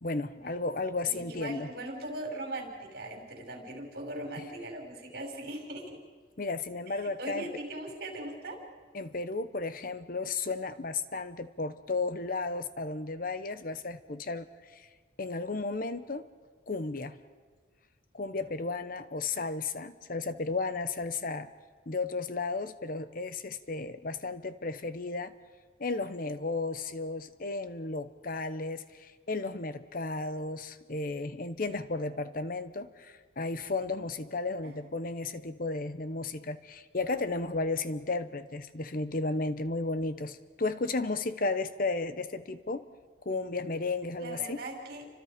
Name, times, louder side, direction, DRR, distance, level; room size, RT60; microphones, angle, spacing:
voice 1, 0.0-1.7 6.4-7.5 8.9-14.9 15.2-16.3 16.7-17.2 18.1-21.5 21.9-25.3 25.8-42.9 43.2-44.6, left 3 dB, 50° left, 12 dB, 0.9 m, -34 dB
voice 2, 1.0-6.0 6.9-8.6 34.6-34.7 44.2-45.0, right 1 dB, 55° right, 1 dB, 5.7 m, -40 dB
30.0 x 25.5 x 5.1 m, 1.5 s
head